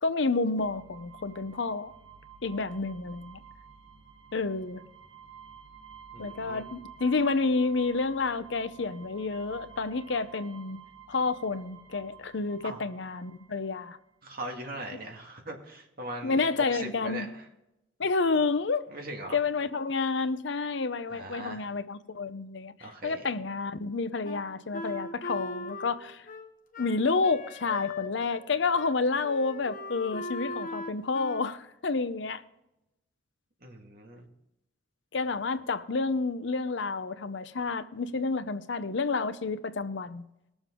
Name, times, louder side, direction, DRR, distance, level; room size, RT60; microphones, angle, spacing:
voice 1, 0.0-1.9 2.4-3.4 4.3-4.8 6.2-10.8 11.1-14.0 14.9-15.0 16.2-17.3 18.0-18.8 19.3-22.7 23.0-26.3 26.8-32.4 35.1-40.3, left 4 dB, 65° left, 0.7 m, -29 dB
sound 1, 0.6-14.0, right 7 dB, 80° right, 1.7 m, -51 dB
voice 2, 6.1-6.7 12.6-12.8 14.2-16.4 16.7-17.4 18.9-19.4 21.1-21.7 22.8-23.3 33.6-34.3, right 1 dB, 50° right, 2.0 m, -40 dB
Wind instrument woodwind instrument, 24.2-28.5 28.7-28.9 29.2-31.5, left 2 dB, 40° left, 1.1 m, -39 dB
20.0 x 7.1 x 3.7 m
head